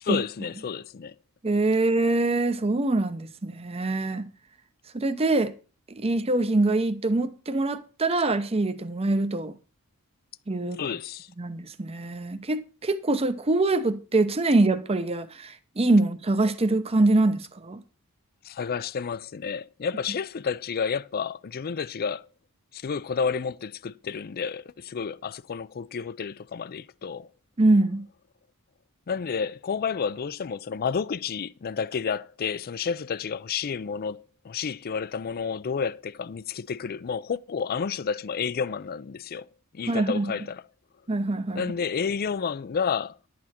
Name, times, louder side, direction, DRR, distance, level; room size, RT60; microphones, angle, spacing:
voice 1, 0.0-1.1 10.8-11.3 18.4-22.3 22.7-27.3 29.1-40.6 41.5-43.2, left 6 dB, 45° left, 0.4 m, -30 dB
voice 2, 1.4-4.3 4.9-5.5 5.9-9.5 10.5-10.8 11.4-17.8 27.6-28.1 39.9-40.3 41.1-41.6, right 2 dB, 25° right, 0.7 m, -24 dB
11.0 x 8.5 x 4.3 m
head